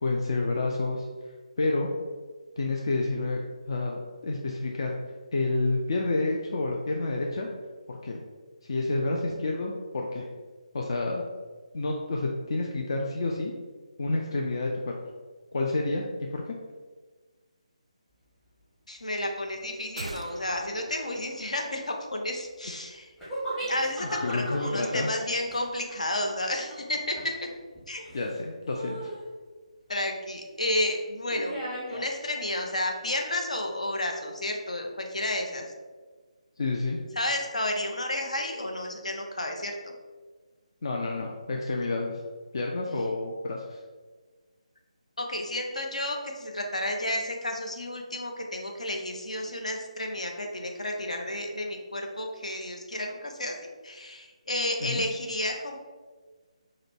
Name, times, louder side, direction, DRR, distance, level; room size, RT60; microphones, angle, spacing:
voice 1, 0.0-1.1 1.6-1.9 2.6-3.4 3.7-5.0 5.3-7.5 7.9-8.2 8.6-10.3 10.7-11.2 11.7-13.5 14.0-14.9 15.5-16.0 16.3-16.5 24.0-25.1 28.1-29.1 36.6-37.0 40.8-42.2 42.5-43.8 54.8-55.0, left 2 dB, 40° left, 0 dB, 0.4 m, -29 dB
voice 2, 18.9-23.1 23.7-27.5 27.9-28.0 29.9-31.6 31.9-35.7 37.2-39.9 45.2-53.6 53.8-55.8, left 1 dB, 65° left, 2 dB, 0.8 m, -31 dB
sound 1, 20.0-22.3 22.6-22.7, right 2 dB, 60° right, 0.4 m, -43 dB
sound 2, 23.2-28.4 28.7-29.3 31.3-32.1, right 1 dB, 5° left, 0.7 m, -38 dB
4.9 x 2.1 x 4.4 m, 1.4 s
figure-of-eight pair, 150°, 4 cm